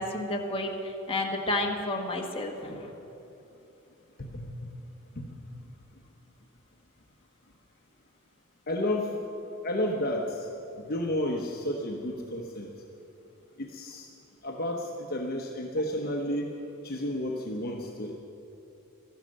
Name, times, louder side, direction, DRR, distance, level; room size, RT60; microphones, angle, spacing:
voice 1, 0.0-2.9, left 1 dB, 25° left, 1 dB, 1.5 m, -31 dB
voice 2, 4.2-4.7 5.2-5.3 8.7-9.2 9.6-10.5 10.8-12.7 13.6-14.1 14.4-16.5 16.8-18.1, left 1 dB, 45° left, 1 dB, 1.0 m, -31 dB
13.5 x 11.5 x 7.7 m, 3.0 s
head